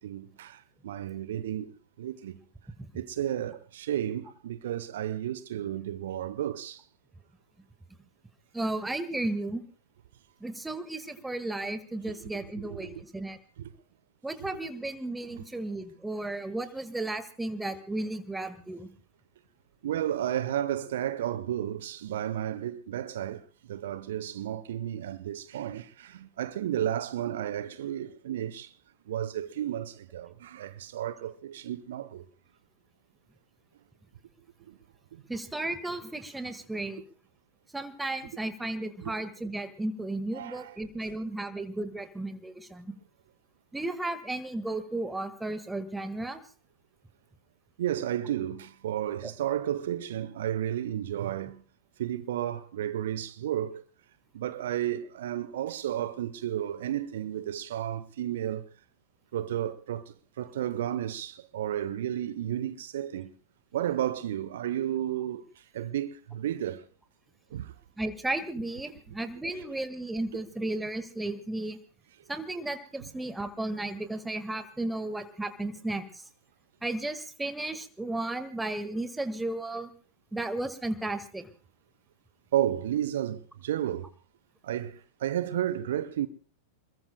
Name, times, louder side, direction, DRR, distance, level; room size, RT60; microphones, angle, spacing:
voice 1, 0.0-1.7 2.0-2.4 2.9-6.8 12.7-13.0 13.6-13.7 14.4-14.5 19.8-28.7 29.1-32.2 34.7-34.8 35.1-35.2 39.0-39.1 40.3-40.7 47.8-51.6 52.0-53.8 54.3-58.7 59.3-60.0 60.4-63.3 63.7-66.8 67.5-67.7 69.5-69.6 82.5-84.1 84.6-86.3, right 11 dB, 60° right, 0.8 m, -32 dB
voice 2, 8.5-9.6 10.4-13.4 14.2-18.9 35.3-37.0 37.7-42.9 43.7-46.4 68.0-71.8 72.3-76.0 76.8-79.9 80.3-81.5, right 2 dB, 5° right, 1.7 m, -34 dB
28.0 x 21.5 x 2.2 m
figure-of-eight pair, 90°, 0 cm